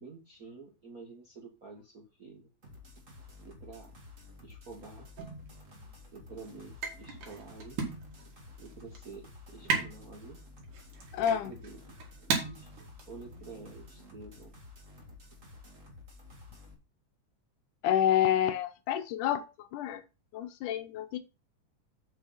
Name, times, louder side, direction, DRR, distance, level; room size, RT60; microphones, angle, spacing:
voice 1, 0.0-2.5 3.4-4.0 4.4-5.1 6.1-7.8 8.6-9.3 9.5-10.4 11.3-11.8 12.2-12.7 13.1-14.5, right 4 dB, 60° right, 0.9 m, -49 dB
sound 1, 2.6-16.7, left 3 dB, 30° right, 1.8 m, -52 dB
sound 2, 5.2-14.0, right 5 dB, 80° right, 3.5 m, -38 dB
voice 2, 11.1-11.5 17.8-20.0 20.3-21.2, left 10 dB, 85° left, 2.2 m, -28 dB
7.8 x 5.6 x 5.6 m
omnidirectional pair, 3.6 m